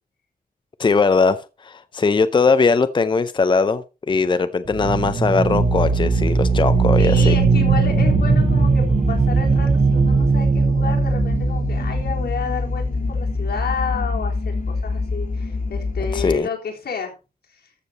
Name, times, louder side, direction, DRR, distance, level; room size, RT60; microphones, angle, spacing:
voice 1, 0.8-7.4 16.1-16.5, left 4 dB, 30° left, 0.6 m, -20 dB
sound 1, 4.7-13.3, right 5 dB, 45° right, 1.1 m, -19 dB
sound 2, 5.6-16.4, left 3 dB, 60° left, 2.0 m, -25 dB
voice 2, 7.0-17.1, left 5 dB, 90° left, 3.7 m, -30 dB
13.5 x 7.2 x 4.1 m
wide cardioid pair, 145°, 16 cm